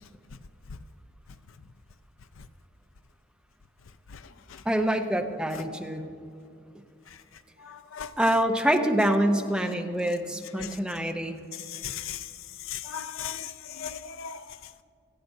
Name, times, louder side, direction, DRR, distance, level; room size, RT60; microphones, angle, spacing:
voice 1, 4.6-6.1 8.2-11.4, right 1 dB, 5° right, 0.7 m, -25 dB
voice 2, 7.7-8.1 10.6-10.7 11.7-12.2 12.7-14.4, left 9 dB, 75° left, 0.5 m, -36 dB
18.5 x 13.5 x 2.7 m
head